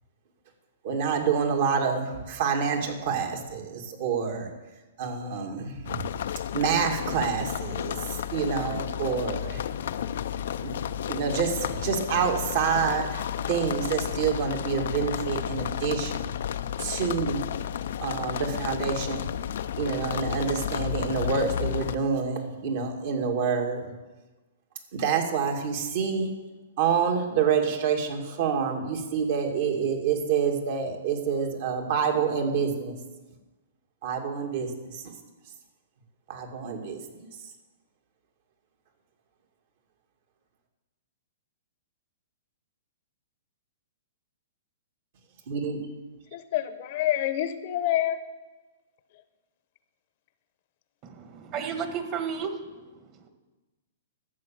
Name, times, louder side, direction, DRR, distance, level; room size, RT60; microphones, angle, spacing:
voice 1, 0.8-4.5 5.0-6.0 6.5-9.6 10.6-10.7 11.1-16.3 16.8-17.4 18.0-19.3 19.8-23.9 24.9-26.3 26.8-33.0 34.0-35.0 36.3-37.0 45.5-45.9, right 6 dB, 55° right, 3 dB, 2.3 m, -27 dB
sound 1, 5.9-22.0, left 9 dB, 65° left, 0.5 m, -32 dB
voice 2, 46.3-48.2, left 12 dB, 50° left, 12 dB, 0.9 m, -27 dB
voice 3, 51.0-53.3, right 6 dB, 30° right, 7 dB, 1.7 m, -34 dB
12.5 x 7.6 x 7.5 m, 1.2 s
hypercardioid pair, 140°, 0 cm